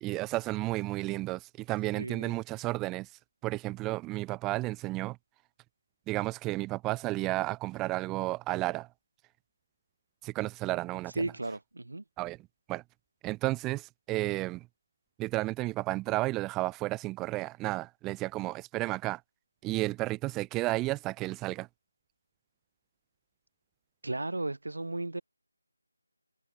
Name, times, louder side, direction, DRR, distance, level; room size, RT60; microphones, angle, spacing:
voice 1, 0.0-3.1 3.4-5.2 6.1-8.9 10.2-11.3 12.2-12.4 12.7-12.8 13.2-14.7 15.2-19.2 19.6-21.7, right 19 dB, 10° right, 0.6 m, -32 dB
voice 2, 1.9-2.3 11.1-12.0 24.0-25.2, right 2 dB, 65° right, 0.9 m, -35 dB
figure-of-eight pair, 160°, 0 cm